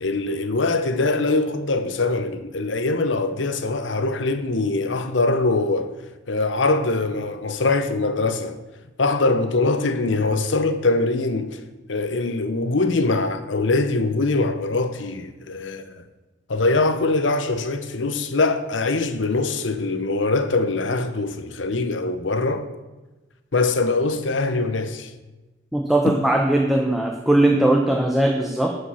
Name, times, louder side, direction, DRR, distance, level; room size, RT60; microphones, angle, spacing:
voice 1, 0.0-5.9 6.3-8.6 9.0-11.6 11.9-16.0 16.5-22.7 23.5-25.1, left 3 dB, 80° left, 0.8 m, -23 dB
voice 2, 25.7-28.8, right 1 dB, ahead, 0.8 m, -19 dB
12.5 x 5.4 x 5.6 m
head